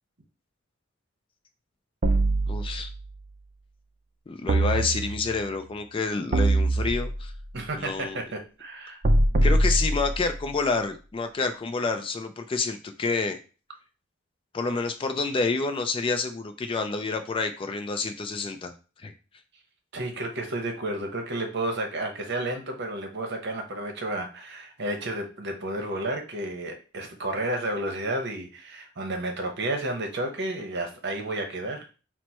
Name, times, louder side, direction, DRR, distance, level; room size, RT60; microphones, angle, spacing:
sound 1, 2.0-3.1 4.5-5.5 6.3-7.4 9.0-10.5, right 1 dB, 40° right, 0.5 m, -23 dB
voice 1, 2.5-2.9 4.3-7.3 7.8-8.2 9.4-13.4 14.5-18.7 19.0-19.1, left 4 dB, 25° left, 8 dB, 0.3 m, -28 dB
voice 2, 7.5-9.0 19.9-31.8, right 1 dB, 55° right, 4 dB, 0.9 m, -31 dB
4.5 x 2.1 x 4.3 m, 0.34 s
head